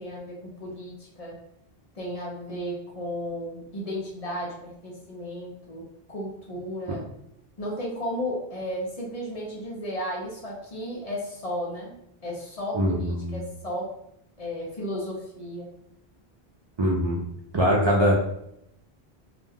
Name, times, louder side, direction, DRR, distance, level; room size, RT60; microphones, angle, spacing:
voice 1, 0.0-1.4 1.9-7.0 7.6-13.9 14.4-15.7, equal, 40° left, -3 dB, 0.7 m, -34 dB
voice 2, 12.7-13.4 16.8-17.2 17.5-18.2, equal, 50° right, -3 dB, 0.3 m, -22 dB
2.3 x 2.2 x 3.4 m, 0.77 s
omnidirectional pair, 1.0 m